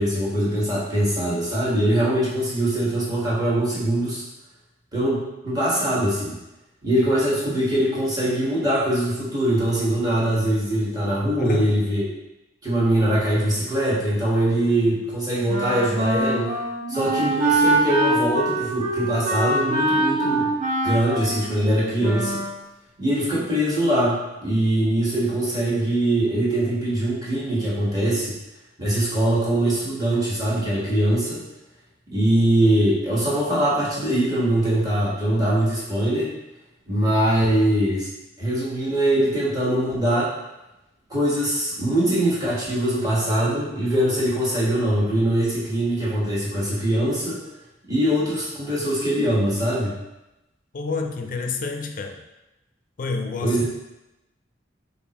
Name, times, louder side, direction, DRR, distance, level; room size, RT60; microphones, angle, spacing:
voice 1, 0.0-4.2 4.9-6.4 6.8-12.1 12.6-16.5 16.9-20.5 20.8-22.4 23.0-28.4 28.8-31.4 32.1-36.3 36.9-38.1 38.4-40.3 41.1-47.4 47.9-50.0 53.4-53.7, right 1 dB, 20° right, -8 dB, 1.3 m, -22 dB
voice 2, 11.4-11.7 50.7-52.2 53.0-53.7, left 4 dB, 45° left, 4 dB, 0.4 m, -29 dB
Wind instrument woodwind instrument, 15.5-22.6, right 1 dB, 40° right, 0.7 m, -24 dB
4.1 x 3.7 x 2.9 m, 0.97 s
head